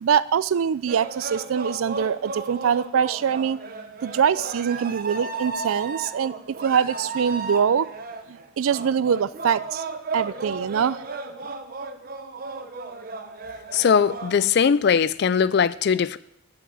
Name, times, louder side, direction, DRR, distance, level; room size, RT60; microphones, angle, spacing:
voice 1, 0.0-3.6 4.0-7.9 8.3-9.8 10.1-11.0, right 7 dB, 75° right, 0.4 m, -23 dB
sound 1, 0.9-14.4, right 3 dB, 45° right, 0.7 m, -34 dB
voice 2, 13.7-16.2, left 6 dB, 50° left, 0.3 m, -20 dB
7.9 x 5.9 x 7.5 m
head